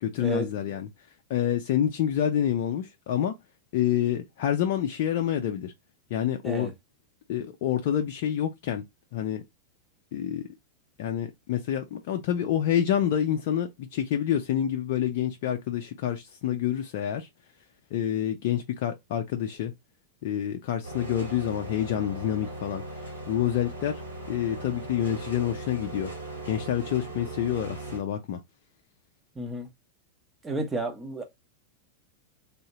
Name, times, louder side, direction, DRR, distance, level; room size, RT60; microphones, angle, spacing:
voice 1, 0.0-0.9 1.3-3.4 3.7-5.7 6.1-6.7 7.3-8.8 9.1-9.4 10.1-10.5 11.0-17.3 17.9-19.7 20.2-22.8 23.3-24.0 24.3-26.1 26.5-28.4, left 10 dB, 50° left, 0.5 m, -27 dB
sound 1, 20.8-28.0, right 2 dB, 80° right, 2.0 m, -39 dB
voice 2, 29.4-29.7 30.4-31.2, right 2 dB, 15° right, 1.0 m, -31 dB
3.4 x 2.7 x 2.9 m
figure-of-eight pair, 90°, 0 cm